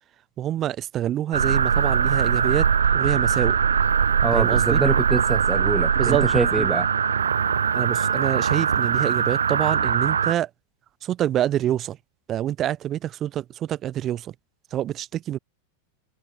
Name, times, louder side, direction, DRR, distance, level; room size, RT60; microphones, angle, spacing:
voice 1, 0.4-3.6 4.3-4.8 6.0-6.3 6.6-6.7 7.7-10.5 11.0-12.0 12.3-14.3 14.7-15.4, right 12 dB, 30° right, 3.5 m, -26 dB
sound 1, 1.3-10.3, right 7 dB, 70° right, 2.0 m, -21 dB
voice 2, 4.2-6.9, right 4 dB, 15° right, 2.3 m, -25 dB
figure-of-eight pair, 90°, 0 cm